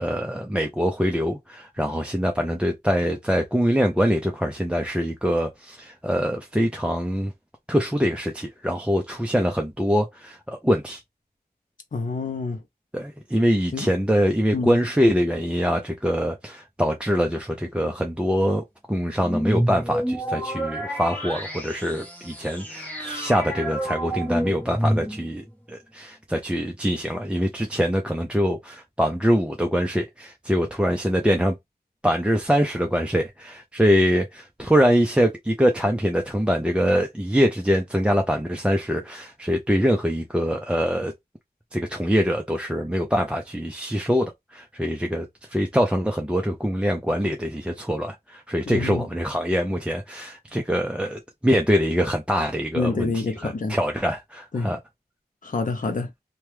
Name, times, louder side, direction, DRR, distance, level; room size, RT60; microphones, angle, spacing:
voice 1, 0.0-7.3 7.7-11.0 12.9-31.6 32.0-41.1 41.7-54.8, equal, 5° right, 0.6 m, -24 dB
voice 2, 11.9-12.6 13.7-13.9 14.5-14.8 48.7-49.1 52.7-53.8 54.5-54.7 55.4-56.1, left 3 dB, 50° left, 0.6 m, -27 dB
sound 1, 19.2-25.5, equal, 10° left, 1.2 m, -28 dB
2.8 x 2.3 x 3.2 m
wide cardioid pair, 60°, 17 cm